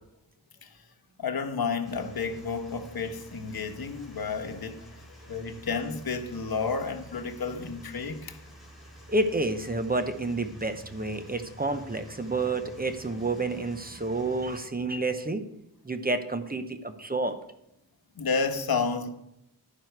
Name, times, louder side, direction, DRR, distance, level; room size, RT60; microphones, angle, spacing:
voice 1, 1.2-4.8 5.3-8.4 18.2-19.1, left 5 dB, 70° left, 1.2 m, -31 dB
sound 1, 1.8-14.6, left 1 dB, ahead, 3.6 m, -51 dB
voice 2, 9.1-15.4 15.8-17.4, right 2 dB, 25° right, 0.8 m, -29 dB
11.5 x 9.4 x 4.7 m
wide cardioid pair, 100°, 37 cm